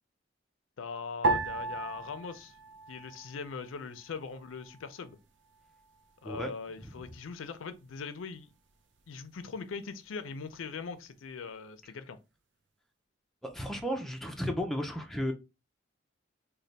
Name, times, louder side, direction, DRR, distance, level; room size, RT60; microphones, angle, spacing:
voice 1, 0.8-2.5 2.9-5.2 6.2-8.5 9.1-12.2, left 5 dB, 85° left, 0.5 m, -41 dB
sound 1, 1.2-3.8 4.0-4.9 5.6-6.0, right 2 dB, 65° right, 0.6 m, -34 dB
voice 2, 13.4-15.3, equal, ahead, 0.5 m, -33 dB
3.2 x 2.2 x 4.0 m
head